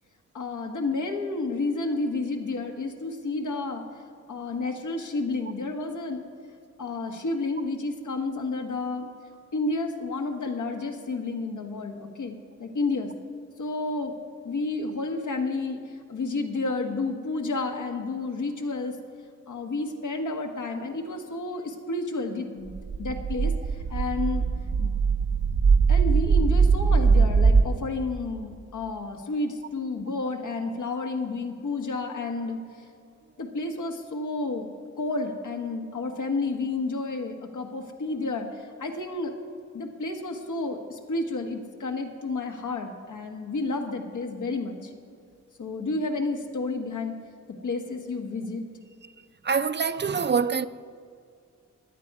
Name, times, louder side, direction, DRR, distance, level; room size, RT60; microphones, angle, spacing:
voice 1, 0.3-3.8 4.3-6.2 6.8-9.1 9.5-13.1 13.6-14.2 14.4-19.0 19.5-22.7 23.0-24.5 24.8-24.9 25.9-32.8 33.4-34.7 35.0-39.3 39.7-44.9 45.6-47.1 47.6-48.6, left 3 dB, 85° left, 1.4 m, -31 dB
sound 1, 22.7-27.6, right 5 dB, 90° right, 1.1 m, -21 dB
voice 2, 49.4-50.7, right 6 dB, 40° right, 0.4 m, -25 dB
16.0 x 10.5 x 4.8 m
wide cardioid pair, 95°, 29 cm